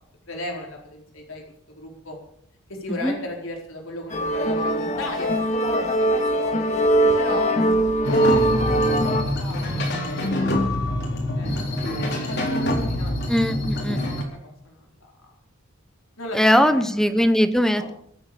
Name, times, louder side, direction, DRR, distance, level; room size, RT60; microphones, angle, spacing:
voice 1, 0.3-2.2 2.7-5.3 5.7-6.7 7.1-8.7 9.1-10.5 11.1-11.5 12.0-13.1 13.6-14.1 14.4-15.1 16.2-17.2 17.7-17.9, left 1 dB, 70° left, 0 dB, 4.6 m, -37 dB
sound 1, 4.1-9.2, right 1 dB, 35° left, 2.0 m, -21 dB
Mridangam bells konakkol in Electroacoustic music, 8.0-14.2, left 1 dB, 50° left, 4.0 m, -25 dB
voice 2, 13.3-14.0 16.3-17.9, equal, ahead, 9 dB, 1.0 m, -20 dB
23.5 x 8.7 x 7.0 m, 0.69 s
head